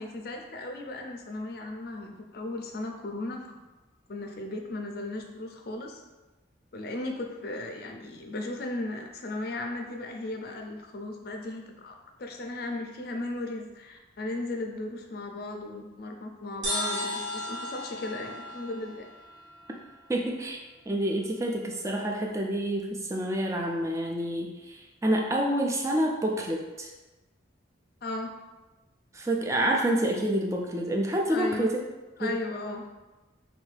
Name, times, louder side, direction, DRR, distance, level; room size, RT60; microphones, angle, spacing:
voice 1, 0.0-3.6 4.1-6.0 6.7-19.1 28.0-28.3 31.3-31.7 32.2-32.9, left 2 dB, 50° left, 3 dB, 0.4 m, -36 dB
sound 1, 16.6-20.1, left 1 dB, 70° right, 1.0 m, -35 dB
voice 2, 20.1-20.6 20.9-26.9 29.1-31.8 32.2-32.3, right 1 dB, 15° right, 0 dB, 0.3 m, -28 dB
3.1 x 2.6 x 3.2 m, 1.1 s
head